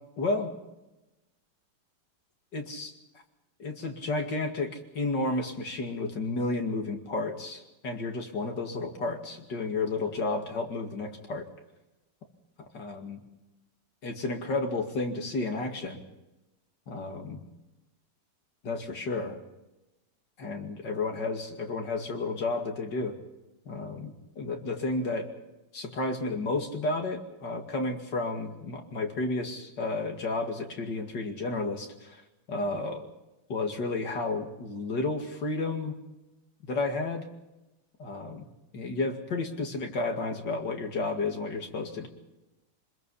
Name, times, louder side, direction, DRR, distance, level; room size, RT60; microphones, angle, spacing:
voice 1, 0.2-0.5 2.5-2.9 3.6-11.5 12.7-13.2 14.0-16.0 16.9-17.4 18.6-19.4 20.4-23.2 23.7-25.3 25.7-32.2 32.5-33.1 33.5-36.0 36.7-37.3 38.0-38.5 38.7-42.1, left 3 dB, 60° left, 3 dB, 2.9 m, -32 dB
25.0 x 21.5 x 5.7 m, 1.0 s
omnidirectional pair, 2.2 m